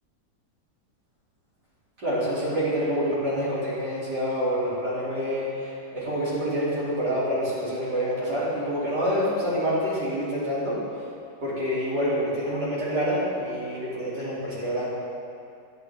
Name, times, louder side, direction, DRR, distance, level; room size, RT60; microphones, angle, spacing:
voice 1, 2.0-10.8 11.4-14.9, equal, 60° right, -11 dB, 3.1 m, -27 dB
11.0 x 8.9 x 3.4 m, 2.5 s
omnidirectional pair, 2.1 m